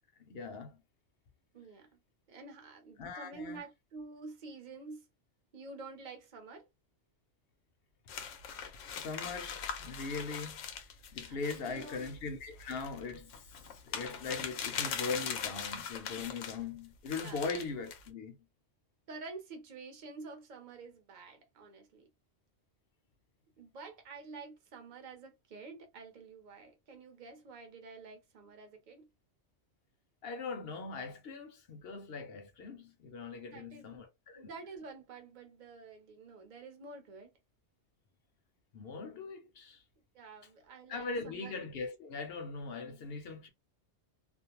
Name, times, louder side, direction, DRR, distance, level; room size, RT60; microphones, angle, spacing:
voice 1, 0.2-0.8 3.0-3.6 9.0-10.6 11.1-18.4 30.2-34.5 38.7-39.8 40.9-43.5, left 4 dB, 60° left, 0.7 m, -40 dB
voice 2, 1.5-2.0 2.3-5.1 5.5-6.7 11.3-12.1 17.2-17.4 19.1-22.1 23.6-29.1 33.4-34.0 34.3-37.3 40.1-41.6, right 3 dB, 45° right, 0.8 m, -49 dB
sound 1, 8.1-16.6 17.1-18.1, left 7 dB, 85° left, 0.9 m, -41 dB
2.5 x 2.1 x 2.8 m
omnidirectional pair, 1.2 m